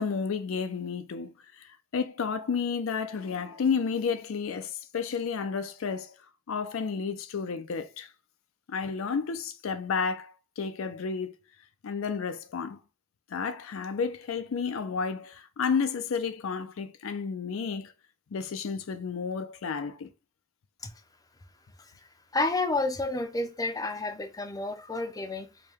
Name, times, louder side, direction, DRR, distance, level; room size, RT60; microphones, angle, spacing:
voice 1, 0.0-6.2 6.5-8.1 8.7-11.3 11.8-12.8 13.3-17.9 18.3-20.1, left 5 dB, 70° left, 0.4 m, -31 dB
voice 2, 22.3-25.5, left 2 dB, 15° left, 0.5 m, -30 dB
4.6 x 2.2 x 3.4 m
head